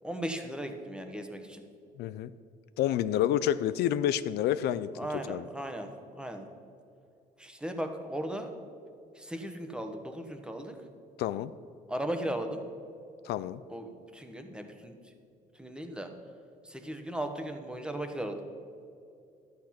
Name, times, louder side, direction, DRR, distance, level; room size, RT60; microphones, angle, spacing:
voice 1, 0.0-1.6 5.0-6.5 7.4-8.5 9.1-10.8 11.9-12.6 13.7-15.1 15.5-16.1 16.6-18.4, right 1 dB, 5° right, 5 dB, 1.2 m, -37 dB
voice 2, 2.0-2.3 2.8-4.9 5.3-5.5 11.2-11.5 13.2-13.6, left 11 dB, 75° left, 14 dB, 0.4 m, -28 dB
12.0 x 8.5 x 5.9 m, 2.5 s
cardioid pair, 110°, 17 cm